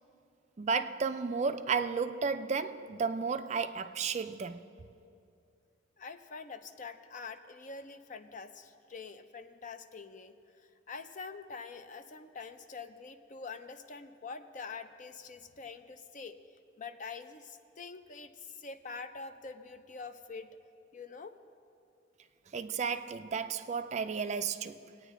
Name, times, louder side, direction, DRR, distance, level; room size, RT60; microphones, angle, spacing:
voice 1, 0.6-4.6 22.5-24.8, right 5 dB, 35° right, 0.3 m, -33 dB
voice 2, 6.0-16.4 16.8-20.5 20.9-21.4, left 4 dB, 40° left, 0.5 m, -45 dB
23.0 x 9.1 x 3.7 m
head